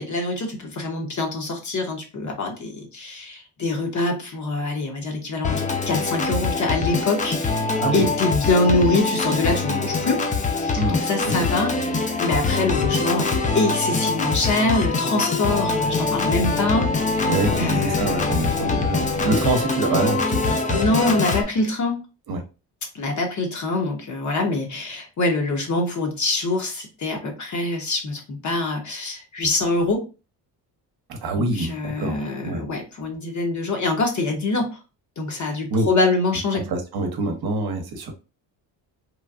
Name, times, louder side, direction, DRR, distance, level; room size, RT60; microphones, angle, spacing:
voice 1, 0.0-7.6 7.9-10.2 10.6-11.9 12.2-18.5 20.7-22.0 22.9-30.0 31.3-34.8 35.2-36.6, left 2 dB, 45° left, 2 dB, 1.0 m, -24 dB
Organ, 5.4-21.4, left 3 dB, 20° left, 0.4 m, -23 dB
voice 2, 7.8-8.1 10.8-11.3 17.3-20.8 21.1-21.2 22.3-22.4 31.1-32.6 35.3-35.9 36.7-38.1, right 2 dB, 60° right, 5 dB, 0.8 m, -26 dB
3.1 x 2.2 x 2.4 m, 0.31 s
cardioid pair, 85°, 42 cm